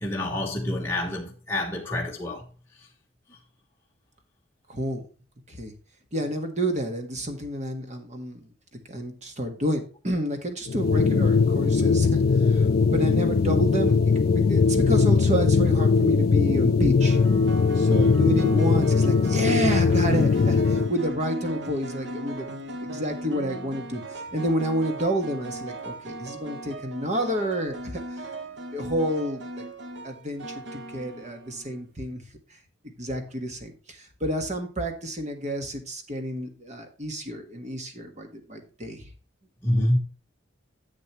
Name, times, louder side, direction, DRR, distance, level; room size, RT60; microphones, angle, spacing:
voice 1, 0.0-2.4 17.9-18.3 39.6-40.0, left 1 dB, 10° left, 1.2 m, -27 dB
voice 2, 4.7-5.0 5.5-5.7 6.1-8.5 8.9-17.2 17.7-22.5 22.9-28.3 28.7-29.6 30.0-32.2 33.0-39.1 39.7-39.9, equal, 35° right, 1.5 m, -29 dB
sound 1, 10.7-20.9, left 4 dB, 50° left, 0.4 m, -20 dB
sound 2, 15.6-15.8 17.0-31.8, right 1 dB, 60° right, 0.9 m, -38 dB
10.5 x 7.5 x 3.1 m
head